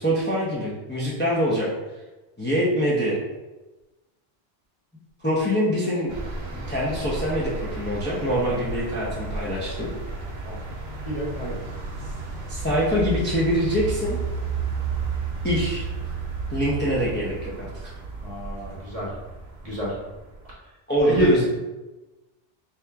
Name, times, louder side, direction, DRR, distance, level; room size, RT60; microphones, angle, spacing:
voice 1, 0.0-1.7 2.4-3.2 5.2-6.1 6.5-9.9 12.5-14.2 15.4-15.9 16.5-17.9 20.9-21.5, equal, 15° left, -6 dB, 0.6 m, -24 dB
sound 1, 6.1-20.5, right 4 dB, 80° right, 1.0 m, -32 dB
voice 2, 11.0-11.6 18.2-19.1 19.6-19.9 21.0-21.3, equal, 35° right, -6 dB, 1.1 m, -27 dB
3.5 x 3.0 x 3.4 m, 1.1 s
omnidirectional pair, 1.1 m